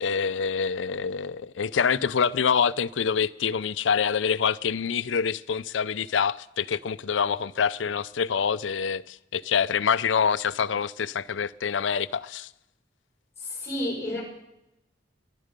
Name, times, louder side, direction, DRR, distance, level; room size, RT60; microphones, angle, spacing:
voice 1, 0.0-12.5, left 6 dB, 75° left, 0.5 m, -26 dB
voice 2, 13.4-14.2, left 1 dB, 15° left, 5.3 m, -30 dB
22.5 x 11.0 x 5.2 m
head